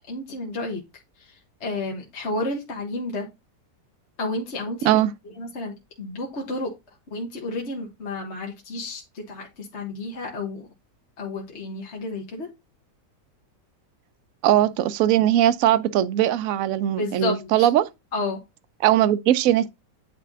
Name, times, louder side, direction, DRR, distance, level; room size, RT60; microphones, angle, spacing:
voice 1, 0.1-0.8 1.2-1.3 1.6-3.3 4.2-5.0 5.4-6.7 7.1-10.7 11.2-12.5 17.0-17.7 18.1-18.4, left 2 dB, 40° left, 1.6 m, -31 dB
voice 2, 14.4-17.9 18.8-19.7, right 12 dB, 65° right, 0.9 m, -20 dB
9.2 x 3.2 x 3.8 m
omnidirectional pair, 1.9 m